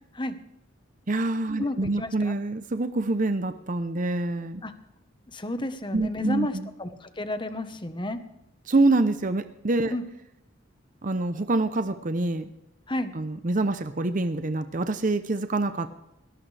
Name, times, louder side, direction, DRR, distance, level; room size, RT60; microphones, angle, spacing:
voice 1, 1.1-4.6 5.9-6.7 8.7-9.9 11.0-12.5 13.1-15.9, right 2 dB, 40° right, 10 dB, 0.7 m, -26 dB
voice 2, 1.6-2.3 4.6-4.7 5.3-8.2 9.9-10.0 12.9-13.1, left 1 dB, 25° left, 9 dB, 1.2 m, -31 dB
21.0 x 18.5 x 3.4 m, 0.88 s
head